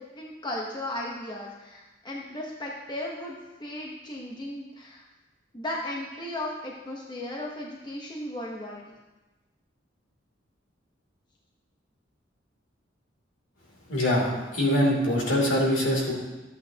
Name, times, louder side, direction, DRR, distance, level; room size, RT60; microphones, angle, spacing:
voice 1, 0.0-5.0 5.5-9.0, left 1 dB, 25° left, -2 dB, 1.0 m, -36 dB
voice 2, 13.9-16.1, equal, 70° left, -3 dB, 2.9 m, -23 dB
13.5 x 8.4 x 2.8 m, 1.1 s
head